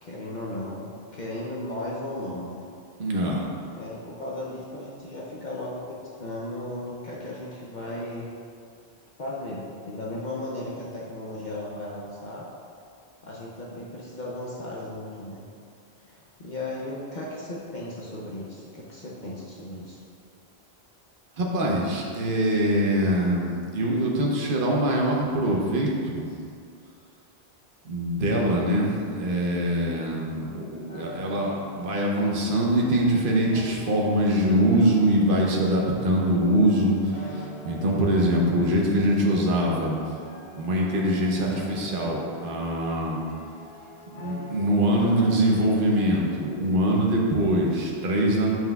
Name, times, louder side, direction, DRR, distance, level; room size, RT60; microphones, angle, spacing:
voice 1, 0.0-2.6 3.7-8.3 9.2-12.5 13.2-15.4 16.0-20.0, left 1 dB, 50° left, -5 dB, 0.7 m, -36 dB
voice 2, 3.0-3.5 21.4-26.3 27.8-40.2 40.5-43.2 44.1-48.6, right 1 dB, 60° right, -2 dB, 1.0 m, -23 dB
sound 1, 30.9-46.3, equal, 70° left, 1.4 m, -43 dB
7.4 x 5.6 x 2.3 m, 2.3 s
omnidirectional pair, 1.1 m